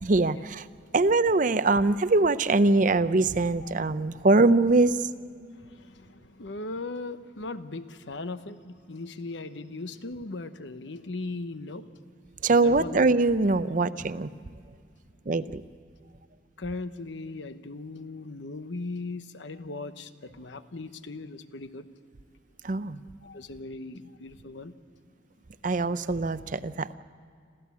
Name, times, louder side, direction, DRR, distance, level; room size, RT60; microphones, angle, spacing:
voice 1, 0.0-0.7 0.9-5.1 12.4-14.3 15.3-15.6 22.6-23.0 25.6-26.9, right 3 dB, 45° right, 0.6 m, -23 dB
voice 2, 5.6-11.9 12.6-13.0 16.6-21.9 23.2-24.7, left 3 dB, 70° left, 1.0 m, -38 dB
27.0 x 15.0 x 8.4 m
head